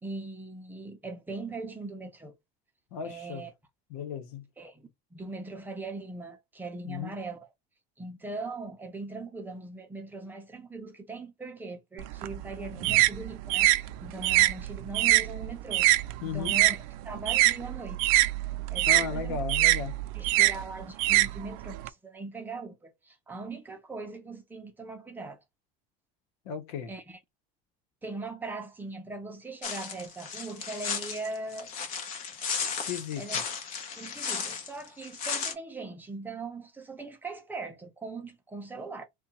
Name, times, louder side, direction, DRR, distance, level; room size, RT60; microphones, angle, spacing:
voice 1, 0.0-2.4 3.0-3.5 4.6-7.5 8.0-15.9 16.2-16.8 17.0-18.2 18.7-19.4 20.1-25.4 26.9-27.2 28.0-31.7 33.2-33.4 34.0-39.0, right 3 dB, 10° right, 0.7 m, -40 dB
voice 2, 2.9-3.5 3.9-4.5 6.8-7.1 16.2-16.6 18.9-20.0 20.4-20.5 26.4-26.9 32.8-33.4, left 7 dB, 80° left, 1.0 m, -35 dB
sound 1, 12.0-16.8 17.1-21.9, right 17 dB, 75° right, 0.4 m, -24 dB
sound 2, 29.6-35.5, left 6 dB, 45° left, 1.1 m, -35 dB
3.5 x 2.3 x 4.1 m
cardioid pair, 155°, 18 cm